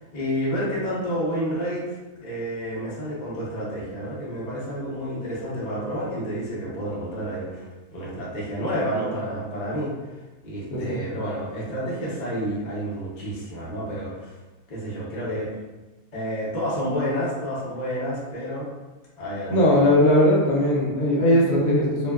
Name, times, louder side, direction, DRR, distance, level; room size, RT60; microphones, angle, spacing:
voice 1, 0.1-10.1 10.4-14.4 14.7-15.5 16.1-18.7 19.2-19.6, equal, 40° left, -7 dB, 0.6 m, -29 dB
voice 2, 19.5-22.1, left 1 dB, 70° left, -4 dB, 1.0 m, -19 dB
2.7 x 2.2 x 2.2 m, 1.1 s
omnidirectional pair, 1.6 m